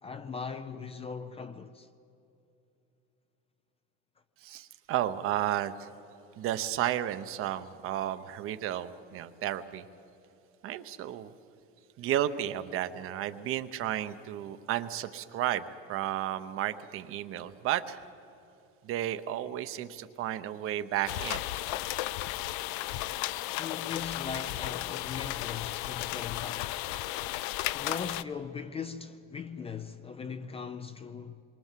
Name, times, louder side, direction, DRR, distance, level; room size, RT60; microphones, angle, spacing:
voice 1, 0.0-1.9 23.6-26.9 27.7-31.4, left 6 dB, 20° left, 0.5 m, -39 dB
voice 2, 4.4-5.9 6.4-9.8 10.6-11.3 12.0-15.6 15.9-18.0 18.8-21.4, right 12 dB, 40° right, 0.9 m, -32 dB
sound 1, 21.1-28.2, left 16 dB, 75° left, 0.7 m, -34 dB
27.0 x 23.5 x 7.5 m
cardioid pair, 165°, 32 cm